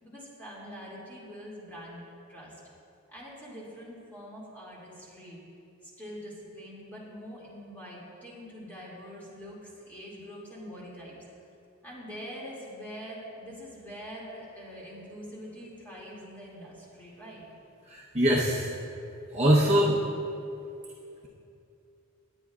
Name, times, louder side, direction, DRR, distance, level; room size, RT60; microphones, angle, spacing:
voice 1, 0.0-2.0 2.3-2.5 3.1-5.4 5.8-11.1 11.8-17.4, equal, 10° left, -7 dB, 2.5 m, -44 dB
voice 2, 17.9-18.7 19.3-20.0, equal, 30° right, -5 dB, 1.0 m, -23 dB
19.5 x 9.2 x 2.5 m, 2.6 s
head